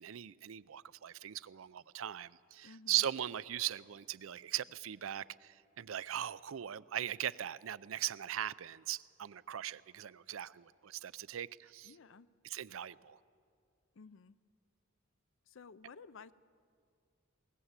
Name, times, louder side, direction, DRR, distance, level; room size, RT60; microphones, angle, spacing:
voice 1, 0.0-11.9 12.5-13.2, right 11 dB, 75° right, 0.5 m, -39 dB
voice 2, 2.6-3.1 11.8-12.3 14.0-14.4 15.5-16.3, left 4 dB, 65° left, 0.5 m, -54 dB
21.5 x 19.5 x 8.1 m
head